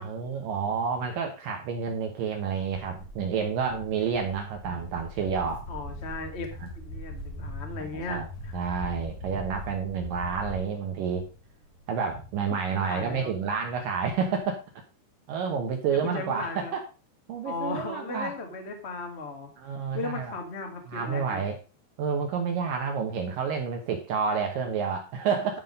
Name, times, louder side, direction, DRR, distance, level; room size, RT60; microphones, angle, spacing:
voice 1, 0.0-5.6 6.6-6.7 7.9-8.3 8.5-11.2 11.9-14.6 15.3-16.8 17.3-18.3 19.6-20.4 20.9-21.6 22.0-25.6, right 6 dB, 70° right, 3 dB, 2.3 m, -29 dB
Walk footsteps, 2.9-10.6, left 1 dB, 55° left, 5.3 m, -40 dB
sound 1, 5.4-14.4, right 1 dB, 55° right, 4.2 m, -51 dB
voice 2, 5.7-8.6 12.7-13.3 15.9-16.8 17.4-19.5 19.9-21.4, left 3 dB, 40° left, 3 dB, 0.9 m, -36 dB
11.5 x 5.6 x 5.2 m, 0.33 s
omnidirectional pair, 4.9 m